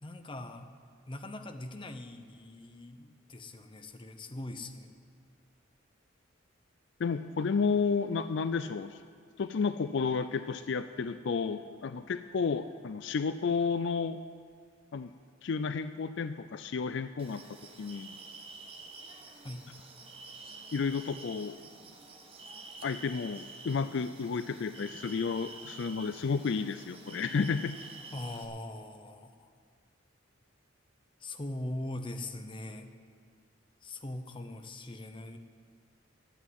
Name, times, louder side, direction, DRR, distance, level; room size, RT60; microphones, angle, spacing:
voice 1, 0.0-0.7 1.1-4.9 19.4-19.6 28.1-29.5 31.2-32.9 33.8-35.4, left 1 dB, 25° left, 7 dB, 0.8 m, -41 dB
voice 2, 7.0-9.0 9.4-14.2 14.9-15.1 15.4-17.4 17.8-18.1 20.7-21.6 22.8-27.8, left 5 dB, 60° left, 11 dB, 0.4 m, -31 dB
sound 1, 17.2-28.4, right 3 dB, 30° right, 1.2 m, -49 dB
11.5 x 8.3 x 9.3 m, 2.1 s
head